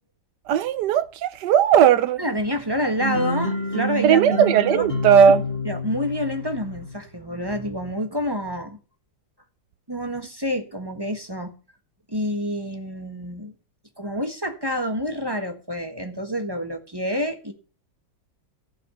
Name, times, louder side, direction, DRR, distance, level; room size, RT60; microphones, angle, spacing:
voice 1, 0.5-2.2 4.0-5.4, right 8 dB, 70° right, 1.4 m, -17 dB
voice 2, 2.2-4.2 4.7-4.9 5.6-8.8 9.9-11.5 12.1-13.5 14.0-17.5, left 1 dB, 15° right, 1.3 m, -28 dB
sound 1, 3.0-7.0, right 1 dB, 30° left, 5.2 m, -28 dB
14.5 x 5.8 x 8.2 m
omnidirectional pair, 2.0 m